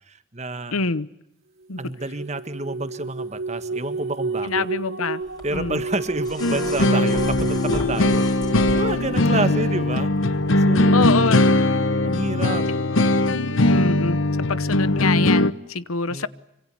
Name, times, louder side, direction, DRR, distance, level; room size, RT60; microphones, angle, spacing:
voice 1, 0.1-0.7 1.8-4.7 5.4-8.3 8.7-10.1 10.6-11.6 12.0-12.7 16.1-16.3, right 2 dB, 30° right, 10 dB, 1.6 m, -29 dB
voice 2, 0.7-1.1 1.7-1.8 4.4-5.2 5.5-5.8 9.3-9.6 10.9-11.4 13.7-14.2 14.5-16.3, left 4 dB, 90° left, 17 dB, 1.0 m, -25 dB
sound 1, 1.7-9.6, right 3 dB, 75° right, 1.7 m, -31 dB
sound 2, 5.4-9.2 10.4-10.5, left 1 dB, 20° left, 4.4 m, -32 dB
sound 3, 6.4-15.5, left 2 dB, 65° left, 1.0 m, -20 dB
26.0 x 25.5 x 8.4 m, 0.83 s
head